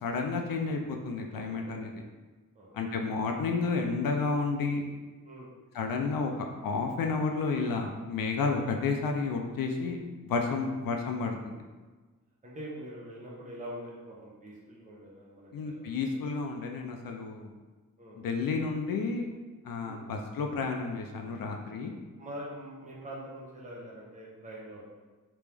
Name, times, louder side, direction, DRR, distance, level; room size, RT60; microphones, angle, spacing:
voice 1, 0.0-2.0 2.7-4.8 5.7-10.0 10.3-11.5 15.5-17.5 18.2-19.3 19.6-21.9, left 4 dB, 80° left, 3 dB, 0.5 m, -31 dB
voice 2, 1.3-1.8 2.5-2.7 5.2-5.5 10.5-10.6 12.4-16.3 18.0-18.2 19.8-20.0 22.2-24.8, equal, 20° right, -5 dB, 0.9 m, -44 dB
3.3 x 3.0 x 3.4 m, 1.3 s
wide cardioid pair, 95°, 34 cm